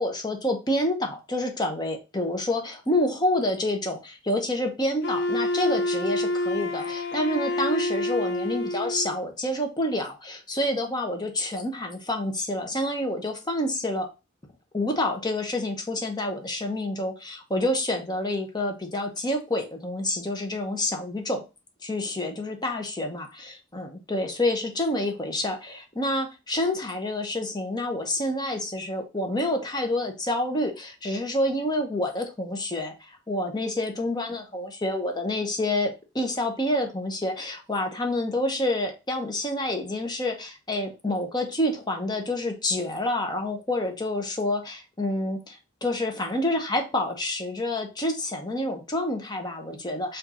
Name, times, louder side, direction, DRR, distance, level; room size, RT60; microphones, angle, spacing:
voice 1, 0.0-14.1 14.7-21.4 21.8-50.2, left 1 dB, 20° left, 3 dB, 0.8 m, -28 dB
Wind instrument woodwind instrument, 5.0-9.2, left 1 dB, 55° left, 0.5 m, -27 dB
4.8 x 2.6 x 4.2 m, 0.28 s
head